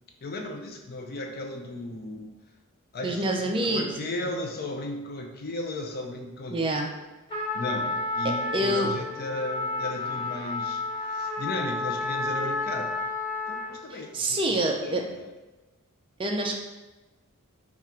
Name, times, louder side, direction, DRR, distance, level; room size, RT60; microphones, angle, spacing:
voice 1, 0.2-2.3 2.9-6.6 7.5-13.0 13.5-15.3, left 2 dB, 45° left, 2 dB, 0.5 m, -35 dB
voice 2, 3.0-4.1 6.5-6.9 8.2-8.9 13.9-15.0 16.2-16.5, right 1 dB, 25° right, 2 dB, 0.4 m, -27 dB
Trumpet, 7.3-13.9, left 3 dB, 20° left, 0.9 m, -31 dB
3.7 x 2.4 x 4.3 m, 1.1 s
head